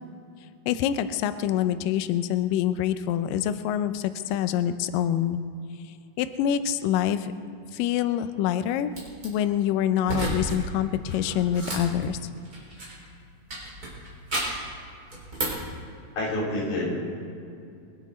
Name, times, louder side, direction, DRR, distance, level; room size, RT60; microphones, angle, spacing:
voice 1, 0.7-5.4 6.2-7.3 7.7-8.9 9.2-12.2, left 10 dB, 90° left, 10 dB, 1.9 m, -26 dB
sound 1, 8.9-9.3 10.0-10.6 10.9-13.1 13.5-14.7 15.1-15.7, right 1 dB, 20° right, 3.9 m, -32 dB
voice 2, 16.2-17.0, left 1 dB, 55° left, -5 dB, 5.6 m, -27 dB
22.5 x 11.5 x 4.2 m, 2.5 s
omnidirectional pair, 4.7 m